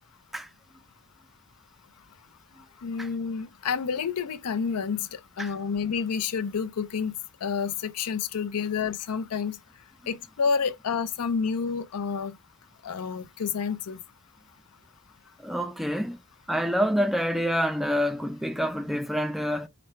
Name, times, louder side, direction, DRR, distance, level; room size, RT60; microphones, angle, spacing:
voice 1, 2.8-7.1 7.4-9.6 10.1-12.3 12.8-14.0, left 6 dB, 90° left, 0.5 m, -29 dB
voice 2, 15.4-16.2 16.5-19.7, equal, ahead, 0.3 m, -27 dB
5.0 x 2.2 x 4.3 m
head